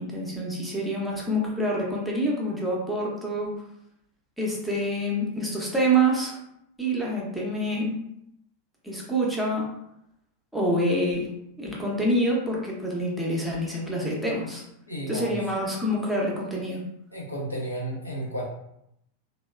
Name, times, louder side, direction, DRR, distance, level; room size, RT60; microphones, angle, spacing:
voice 1, 0.0-3.5 4.4-6.4 6.8-8.0 8.8-9.7 10.5-11.3 11.6-14.6 15.1-16.8, right 1 dB, ahead, -4 dB, 0.6 m, -26 dB
voice 2, 14.9-15.4 17.1-18.4, right 1 dB, 80° left, -3 dB, 0.6 m, -32 dB
2.9 x 2.0 x 2.3 m, 0.78 s
figure-of-eight pair, 90°, 0 cm